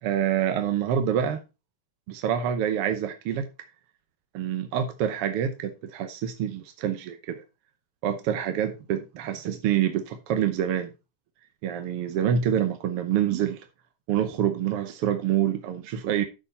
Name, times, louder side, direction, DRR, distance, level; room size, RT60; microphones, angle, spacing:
voice 1, 0.0-1.4 2.1-3.5 4.3-7.4 8.0-10.9 11.6-13.6 14.1-16.2, right 9 dB, 65° right, 1.5 m, -26 dB
9.9 x 6.3 x 4.2 m
omnidirectional pair, 3.5 m